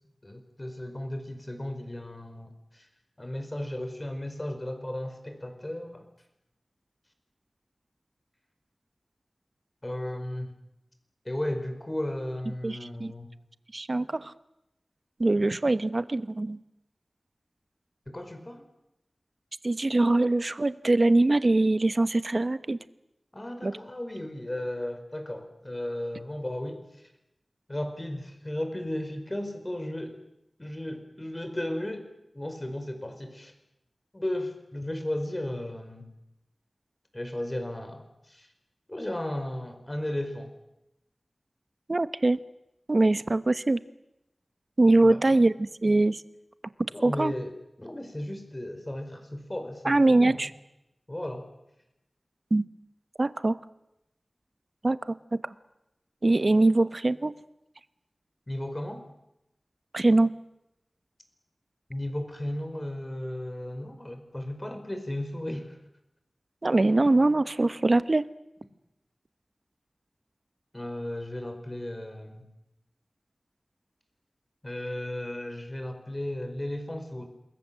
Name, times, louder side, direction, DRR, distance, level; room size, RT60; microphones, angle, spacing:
voice 1, 0.2-2.9 3.2-6.1 9.8-10.5 11.2-13.3 18.1-18.6 23.3-26.8 27.7-30.2 30.6-32.1 32.3-33.5 34.1-36.1 37.1-38.5 38.9-40.6 45.0-45.2 46.9-50.4 51.1-51.5 58.5-59.0 61.9-65.8 70.7-72.5 74.6-77.3, left 1 dB, 25° left, 7 dB, 4.8 m, -35 dB
voice 2, 12.6-13.1 13.7-14.3 15.2-16.6 19.6-22.8 23.6-23.7 41.9-42.4 42.9-43.8 44.8-46.2 47.0-47.3 49.8-50.5 52.5-52.6 53.2-53.6 54.8-55.5 56.2-57.3 59.9-60.3 66.6-68.2, right 2 dB, 50° right, 14 dB, 1.0 m, -23 dB
28.0 x 21.5 x 7.6 m, 0.89 s
wide cardioid pair, 70°, 0 cm